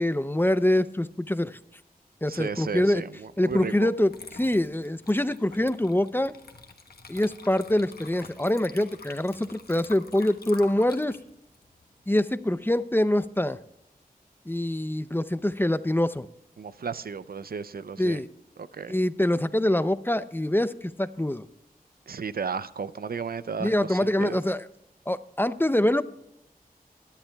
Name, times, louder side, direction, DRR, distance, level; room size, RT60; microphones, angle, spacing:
voice 1, 0.0-1.6 2.2-3.0 3.4-4.1 4.4-6.3 7.1-11.1 12.1-13.6 14.5-16.3 18.0-18.3 18.9-21.4 23.6-24.6 25.1-26.0, left 1 dB, 15° left, 13 dB, 0.5 m, -25 dB
voice 2, 2.3-3.9 16.6-18.2 18.6-19.0 22.1-24.4, right 6 dB, 75° right, 15 dB, 0.5 m, -34 dB
Water / Liquid, 3.5-3.7 4.1-12.6, left 4 dB, 80° left, 1.2 m, -47 dB
21.5 x 11.5 x 2.3 m, 0.83 s
wide cardioid pair, 80°, 16 cm